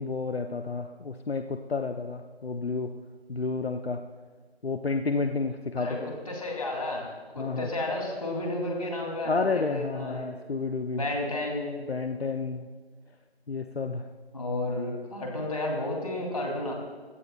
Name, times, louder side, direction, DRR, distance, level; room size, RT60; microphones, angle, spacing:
voice 1, 0.0-2.9 3.3-4.0 4.6-6.1 7.4-7.7 9.3-11.0 11.9-12.7 13.5-14.1, left 4 dB, 70° left, 6 dB, 0.9 m, -30 dB
voice 2, 5.8-10.3 10.9-11.8 14.3-16.7, left 2 dB, 35° left, 0 dB, 3.2 m, -32 dB
20.5 x 17.0 x 2.4 m, 1.5 s
figure-of-eight pair, 175°, 32 cm